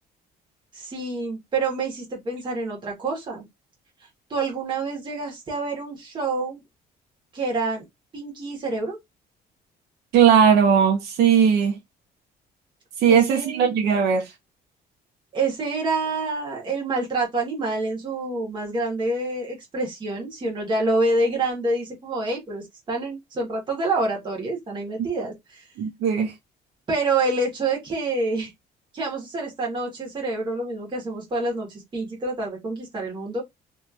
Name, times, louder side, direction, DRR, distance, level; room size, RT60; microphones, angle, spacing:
voice 1, 0.7-3.4 4.3-6.6 7.3-7.8 8.1-9.0 13.1-13.7 15.3-25.7 26.9-28.5 28.9-33.4, right 2 dB, 25° right, 1.4 m, -27 dB
voice 2, 10.1-11.8 13.0-14.3 25.8-26.3, right 7 dB, 75° right, 0.9 m, -18 dB
2.9 x 2.8 x 2.4 m
cardioid pair, 170°, 17 cm